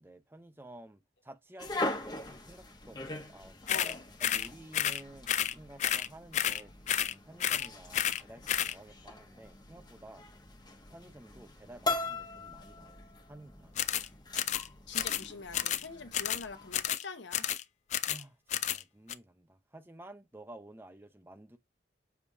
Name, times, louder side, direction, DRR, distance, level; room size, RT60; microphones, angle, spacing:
voice 1, 0.0-3.6 4.2-10.3 10.9-13.7 18.1-21.6, right 1 dB, 10° right, 0.6 m, -52 dB
sound 1, 1.6-16.8, left 2 dB, 20° left, 1.0 m, -41 dB
voice 2, 3.7-4.0 14.9-17.5, left 4 dB, 70° left, 1.0 m, -44 dB
sound 2, 3.7-3.9 4.2-4.5 4.7-5.0 5.3-5.5 5.8-6.1 6.3-6.6 6.9-7.1 7.4-7.7 7.9-8.2 8.5-8.7 13.8-14.1 14.4-14.7 14.9-15.3 15.5-15.9 16.1-16.4 16.7-17.0 17.3-17.6 17.9-18.2 18.5-18.8 19.1-19.2, left 10 dB, 40° left, 0.3 m, -31 dB
7.1 x 2.9 x 4.8 m
head